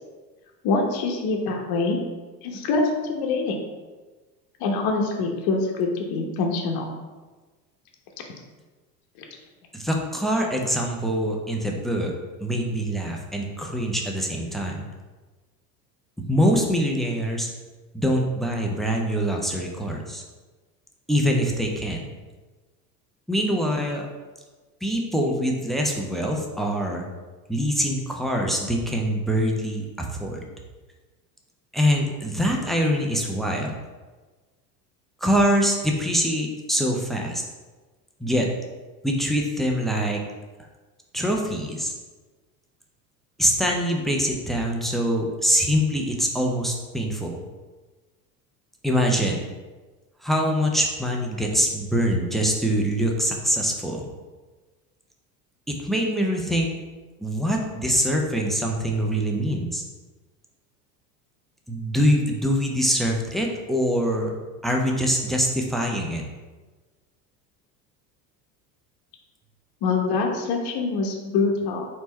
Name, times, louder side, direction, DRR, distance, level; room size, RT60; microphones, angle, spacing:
voice 1, 0.6-2.0 2.4-3.6 4.6-6.9 69.8-71.9, left 3 dB, 45° left, 1 dB, 0.9 m, -24 dB
voice 2, 9.7-12.1 12.4-14.9 16.3-17.5 17.9-20.2 21.1-22.1 23.3-24.0 24.8-27.0 27.5-30.4 31.7-33.7 35.2-37.4 38.2-38.5 39.0-40.2 41.1-41.9 43.4-47.4 48.8-49.4 50.2-54.1 55.7-56.7 57.2-59.8 61.7-64.4 64.6-66.2, equal, ahead, 0 dB, 0.4 m, -24 dB
4.4 x 2.9 x 4.0 m, 1.3 s
hypercardioid pair, 75°, 49 cm